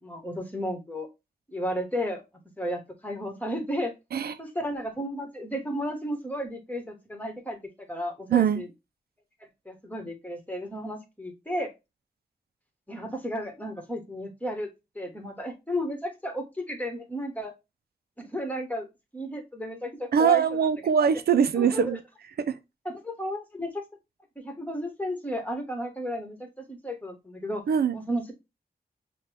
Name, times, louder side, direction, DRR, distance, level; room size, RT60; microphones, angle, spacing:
voice 1, 0.0-1.1 1.5-2.2 2.6-3.9 4.4-8.7 9.6-11.7 12.9-17.5 18.2-18.9 19.1-20.4 21.6-22.0 22.8-23.8 24.3-27.6 27.9-28.3, equal, 10° left, 1.5 m, -33 dB
voice 2, 8.3-8.6 20.1-22.0 22.5-22.6 27.7-27.9, right 7 dB, 80° right, 0.4 m, -22 dB
5.6 x 2.3 x 3.4 m
cardioid pair, 50°, 16 cm